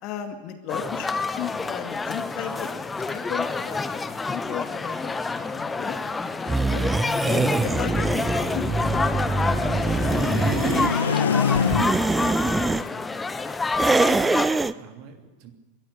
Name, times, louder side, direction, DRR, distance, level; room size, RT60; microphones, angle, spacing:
voice 1, 0.0-6.0 6.4-6.8 7.2-9.2 9.6-9.8 10.1-11.2 11.9-12.9 13.2-13.3, left 9 dB, 45° left, 6 dB, 2.3 m, -36 dB
sound 1, 0.7-14.5, left 4 dB, 15° left, 1.2 m, -28 dB
sound 2, 6.5-10.9 11.6-12.8 13.7-14.7, right 3 dB, 10° right, 0.7 m, -24 dB
sound 3, 6.7-12.2, left 6 dB, 75° left, 0.8 m, -28 dB
voice 2, 13.9-15.5, right 6 dB, 50° right, 6 dB, 2.9 m, -46 dB
22.5 x 13.5 x 10.0 m, 1.2 s
figure-of-eight pair, 85°, 0 cm